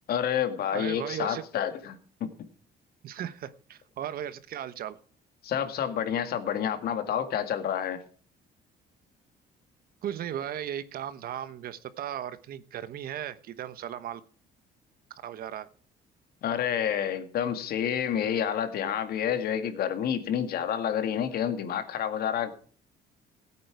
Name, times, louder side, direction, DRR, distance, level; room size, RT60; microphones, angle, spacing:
voice 1, 0.1-2.3 5.4-8.0 16.4-22.5, left 9 dB, 65° left, 9 dB, 2.0 m, -29 dB
voice 2, 0.7-1.4 3.0-5.0 10.0-14.2 15.2-15.7, right 10 dB, 60° right, 14 dB, 1.1 m, -36 dB
16.0 x 8.7 x 4.7 m, 0.43 s
cardioid pair, 110°, 17 cm